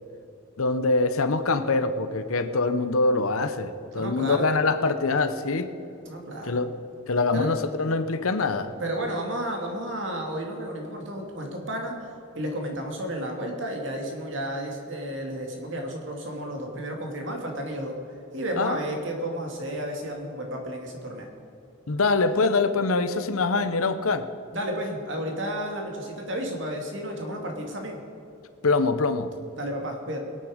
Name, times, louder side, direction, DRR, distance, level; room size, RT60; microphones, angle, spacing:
voice 1, 0.6-5.7 6.5-6.7 7.1-8.7 18.6-18.8 21.9-24.3 28.6-29.3, left 3 dB, 80° left, 10 dB, 0.9 m, -24 dB
voice 2, 3.9-4.5 6.1-6.6 7.3-7.6 8.8-11.9 12.3-18.0 18.3-21.3 24.5-28.0 29.6-30.2, right 1 dB, 60° right, 1 dB, 2.5 m, -32 dB
22.5 x 9.0 x 5.1 m, 2.8 s
head